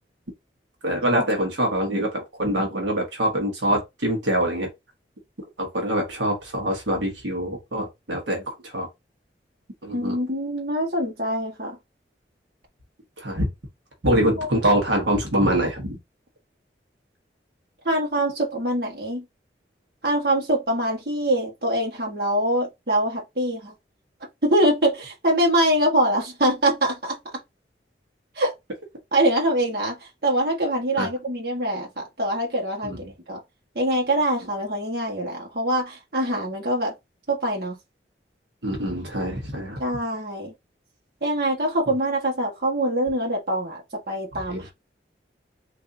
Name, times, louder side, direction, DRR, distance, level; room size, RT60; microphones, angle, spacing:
voice 1, 0.8-4.7 5.6-8.9 9.8-10.1 13.2-13.5 14.0-16.0 31.0-31.1 32.8-33.0 38.6-39.8 44.5-44.6, right 1 dB, 85° right, 1.2 m, -24 dB
voice 2, 9.9-11.8 14.4-14.5 17.8-19.2 20.0-23.7 24.4-27.2 28.4-28.5 29.1-33.4 33.7-36.9 37.3-37.8 39.8-40.5 41.2-43.8 44.1-44.7, right 1 dB, 55° right, 1.3 m, -24 dB
3.7 x 2.7 x 2.7 m
head